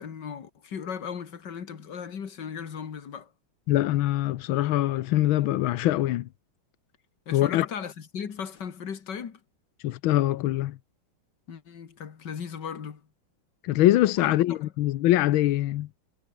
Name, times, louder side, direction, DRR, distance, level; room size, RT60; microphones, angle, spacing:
voice 1, 0.0-3.3 7.3-9.4 11.5-13.0 14.2-14.6, left 7 dB, 60° left, 2.5 m, -37 dB
voice 2, 3.7-6.3 7.3-7.7 9.8-10.8 13.6-15.9, left 15 dB, 90° left, 1.6 m, -23 dB
omnidirectional pair, 2.2 m